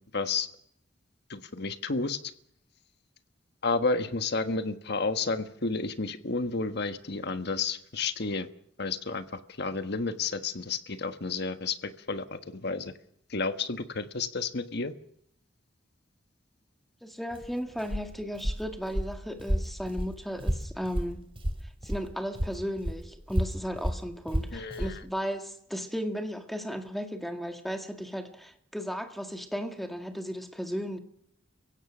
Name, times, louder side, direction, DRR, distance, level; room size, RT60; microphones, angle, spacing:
voice 1, 0.1-0.5 1.3-2.2 3.6-8.5 8.8-9.2 9.6-12.9 13.3-14.9 24.5-24.9, left 4 dB, 60° left, 10 dB, 1.4 m, -31 dB
voice 2, 17.0-21.2 21.8-31.0, equal, ahead, 5 dB, 1.9 m, -35 dB
Walk footsteps, 17.3-22.1 22.4-25.0, equal, 30° right, 2.9 m, -32 dB
29.5 x 16.5 x 6.1 m, 0.72 s
head